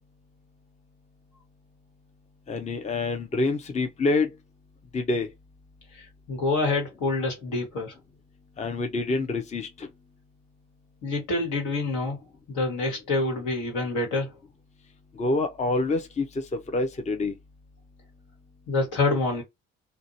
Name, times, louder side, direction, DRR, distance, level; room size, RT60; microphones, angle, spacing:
voice 1, 2.5-4.3 4.9-5.3 8.6-9.9 15.2-17.3, left 3 dB, 20° left, 0.6 m, -27 dB
voice 2, 5.9-7.9 11.0-12.2 12.5-14.3 18.7-19.4, left 3 dB, 70° left, 1.4 m, -27 dB
2.5 x 2.2 x 2.6 m
hypercardioid pair, 50°, 31 cm